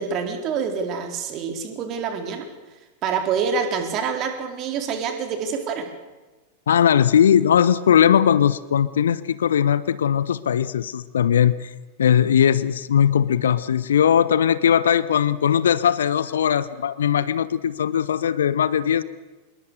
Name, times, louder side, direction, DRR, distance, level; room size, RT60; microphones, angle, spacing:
voice 1, 0.0-2.5 3.0-5.9, right 6 dB, 35° right, 5 dB, 4.4 m, -26 dB
voice 2, 6.7-11.7 12.0-19.0, left 9 dB, 65° left, 17 dB, 1.0 m, -19 dB
27.0 x 22.0 x 6.7 m, 1.2 s
figure-of-eight pair, 90°, 0 cm